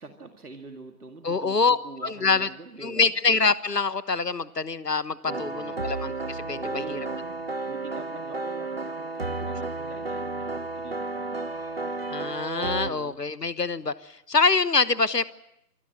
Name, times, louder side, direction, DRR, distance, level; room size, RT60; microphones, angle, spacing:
voice 1, 0.0-3.2 5.3-5.8 6.5-11.5 12.8-13.2, right 2 dB, 65° right, 5 dB, 2.2 m, -44 dB
voice 2, 1.2-1.8 2.0-2.5 2.8-7.0 12.1-15.2, left 4 dB, 75° left, 16 dB, 1.3 m, -25 dB
sound 1, 5.3-12.9, right 3 dB, 40° right, 1.0 m, -32 dB
26.5 x 20.5 x 7.6 m, 0.80 s
figure-of-eight pair, 160°, 49 cm